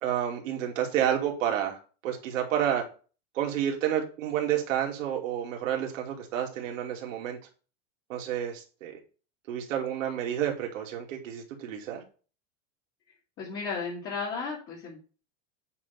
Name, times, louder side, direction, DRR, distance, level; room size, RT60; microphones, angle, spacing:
voice 1, 0.0-2.8 3.3-7.4 8.1-9.0 9.5-12.0, right 10 dB, 80° right, 2 dB, 2.6 m, -30 dB
voice 2, 13.4-15.1, left 4 dB, 30° left, -5 dB, 1.9 m, -34 dB
8.5 x 3.6 x 6.6 m, 0.36 s
supercardioid pair, 175°, 38 cm